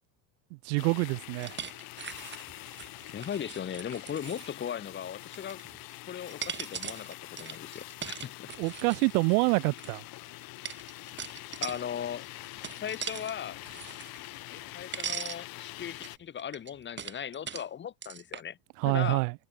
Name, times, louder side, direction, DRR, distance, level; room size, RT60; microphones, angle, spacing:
voice 1, 0.5-1.6 8.6-10.0 18.8-19.3, right 34 dB, 80° right, 1.1 m, -27 dB
sound 1, 0.8-16.2, left 19 dB, 50° left, 3.3 m, -45 dB
sound 2, 1.4-4.6 5.2-5.9 6.3-9.9 10.7-11.8 12.2-13.3 13.7-14.7 14.9-15.4 16.0-17.7 18.0-18.4, right 8 dB, 25° right, 4.5 m, -40 dB
voice 2, 3.1-5.6 6.1-8.5 11.6-12.3 12.8-13.6 14.5-18.6 18.8-19.2, left 9 dB, 25° left, 2.0 m, -38 dB
cardioid pair, 165°, 46 cm